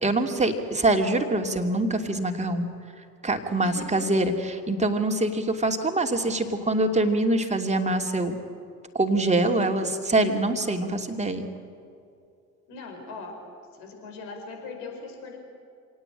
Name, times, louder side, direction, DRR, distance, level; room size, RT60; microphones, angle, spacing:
voice 1, 0.0-2.7 3.2-8.4 8.9-11.5, right 2 dB, 15° right, 3 dB, 2.7 m, -24 dB
voice 2, 3.6-4.1 12.7-13.3 13.7-15.4, left 4 dB, 60° left, 2 dB, 5.1 m, -40 dB
27.0 x 18.5 x 8.9 m, 2.4 s
figure-of-eight pair, 60°, 43 cm